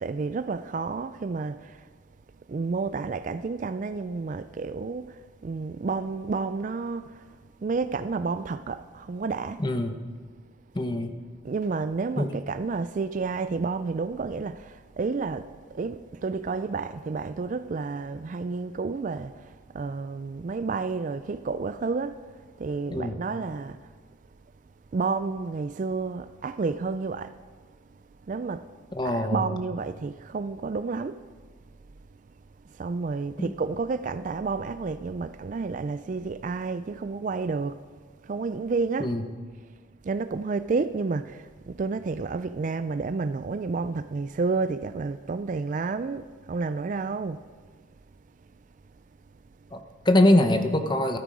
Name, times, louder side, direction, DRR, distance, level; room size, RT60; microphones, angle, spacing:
voice 1, 0.0-1.9 2.5-9.6 11.4-22.2 22.6-23.9 24.9-27.4 28.3-28.7 29.0-31.2 32.7-37.8 38.2-39.1 40.0-47.4, right 4 dB, 40° right, 0.3 m, -30 dB
voice 2, 9.6-10.0 10.7-11.1 12.2-12.3 22.9-23.2 28.9-29.6 33.4-33.5 39.0-39.2 49.7-51.2, left 1 dB, 20° left, 0.9 m, -23 dB
13.0 x 13.0 x 4.9 m
head